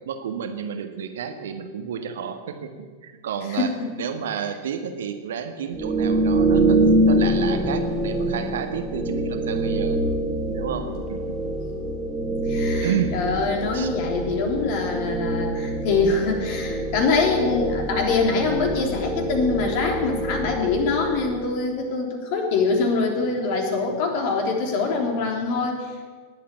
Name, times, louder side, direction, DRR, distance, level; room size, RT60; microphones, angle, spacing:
voice 1, 0.0-3.7 4.0-6.8 7.0-10.0 10.5-11.2 12.8-13.1 13.7-13.9, right 8 dB, 60° right, 6 dB, 1.6 m, -31 dB
voice 2, 3.5-3.9 12.5-26.1, left 4 dB, 45° left, 2 dB, 3.5 m, -24 dB
sound 1, 5.7-21.5, right 1 dB, 5° right, 2.5 m, -25 dB
19.5 x 8.5 x 8.5 m, 1.5 s
figure-of-eight pair, 90°, 0 cm